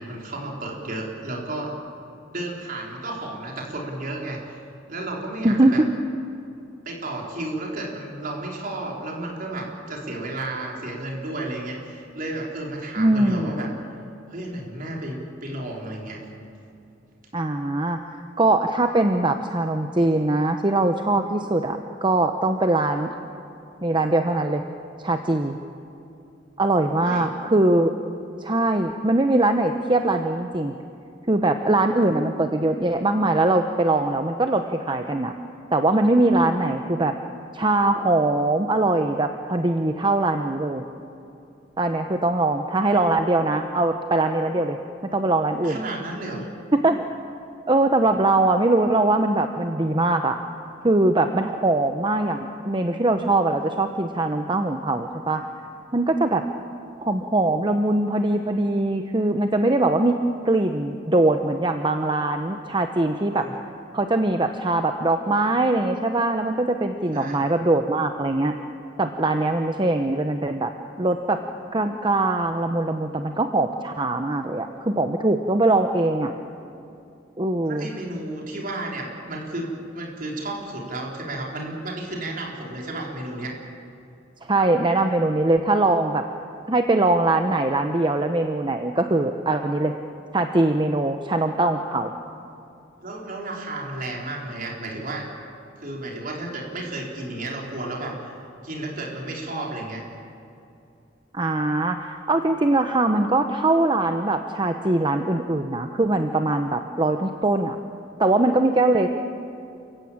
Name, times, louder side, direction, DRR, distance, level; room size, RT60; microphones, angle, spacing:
voice 1, 0.0-1.7 2.3-4.6 4.9-5.8 6.8-13.7 14.3-16.2 27.0-27.3 44.4-44.6 45.5-46.5 63.2-63.5 67.1-67.4 77.6-83.6 93.0-95.3 95.8-98.3 98.6-100.0, right 2 dB, 50° right, -1 dB, 4.4 m, -32 dB
voice 2, 5.4-5.8 13.0-13.6 17.3-23.1 23.8-24.6 25.0-25.6 26.6-27.9 28.4-30.7 31.3-35.3 35.7-37.1 37.5-40.8 41.8-44.8 45.1-45.8 46.8-47.1 47.7-50.4 50.8-55.4 55.9-56.4 57.0-60.2 60.4-63.5 63.9-68.5 69.0-70.7 71.0-71.4 71.7-76.3 77.4-77.9 84.4-86.2 86.7-89.9 90.3-92.1 101.3-107.8 108.2-109.1, right 2 dB, 25° right, 6 dB, 0.9 m, -22 dB
29.0 x 16.0 x 8.8 m, 2.7 s
head